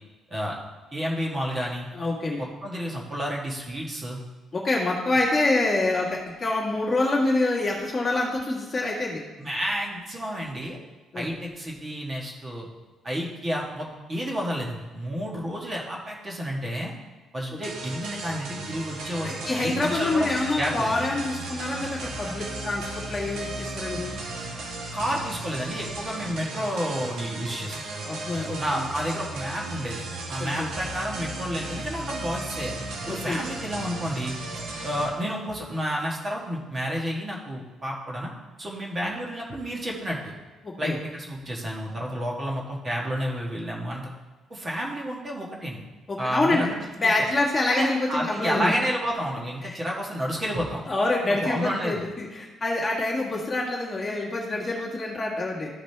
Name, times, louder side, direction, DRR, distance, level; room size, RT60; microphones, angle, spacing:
voice 1, 0.9-1.9 2.6-4.2 9.4-10.8 11.1-12.7 13.0-16.9 17.3-20.3 20.6-20.9 24.9-27.8 28.6-30.0 30.3-32.7 33.0-34.3 34.8-38.3 38.6-40.3 40.8-44.1 44.5-45.8 46.2-47.1 47.7-50.8 51.4-52.0, equal, 20° right, -2 dB, 1.4 m, -30 dB
voice 2, 1.9-2.5 4.5-9.2 11.1-11.2 17.5-17.6 19.2-24.1 28.0-28.8 30.4-30.7 33.1-33.4 40.6-41.0 46.1-46.7 47.0-48.7 49.6-49.8 50.9-55.7, left 2 dB, 20° left, -4 dB, 1.8 m, -26 dB
sound 1, 17.6-35.1, right 2 dB, 85° right, 1.7 m, -35 dB
13.5 x 5.0 x 3.3 m, 1.3 s
cardioid pair, 175°, 0 cm